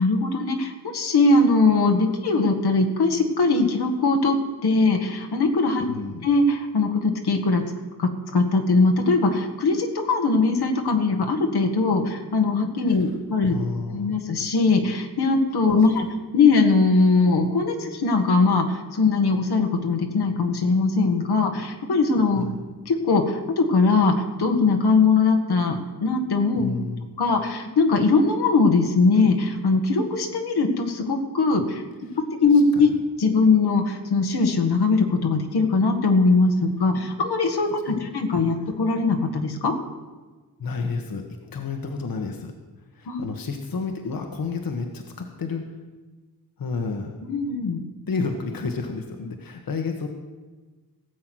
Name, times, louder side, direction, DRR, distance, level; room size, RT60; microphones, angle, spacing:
voice 1, 0.0-4.4 4.6-5.9 6.2-7.6 8.0-13.5 13.9-16.1 16.3-22.4 22.9-26.7 27.2-31.8 32.4-32.9 33.2-39.8 43.1-43.2 47.2-47.8, left 3 dB, 85° left, 4 dB, 1.7 m, -21 dB
voice 2, 5.8-6.3 12.9-13.0 13.5-14.2 22.4-22.6 26.6-27.1 32.1-32.2 32.5-33.0 37.9-38.0 38.5-38.6 40.6-42.5 42.9-45.7 46.6-47.2 48.1-50.1, left 4 dB, 60° left, 4 dB, 1.4 m, -31 dB
17.5 x 7.7 x 6.3 m, 1.3 s
wide cardioid pair, 100°, 38 cm